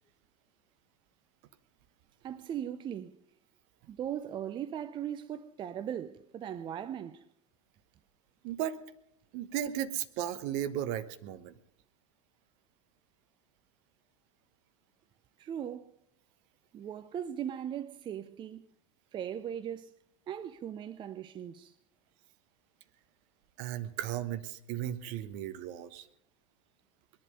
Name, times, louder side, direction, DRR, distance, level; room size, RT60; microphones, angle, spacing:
voice 1, 2.2-3.1 3.9-7.2 15.4-15.9 16.7-18.7 19.1-20.0 20.3-21.7, right 9 dB, 30° right, 0.6 m, -38 dB
voice 2, 8.4-8.8 9.3-11.5 23.6-26.1, right 11 dB, 50° right, 1.1 m, -35 dB
21.0 x 11.0 x 5.3 m
figure-of-eight pair, 85°, 17 cm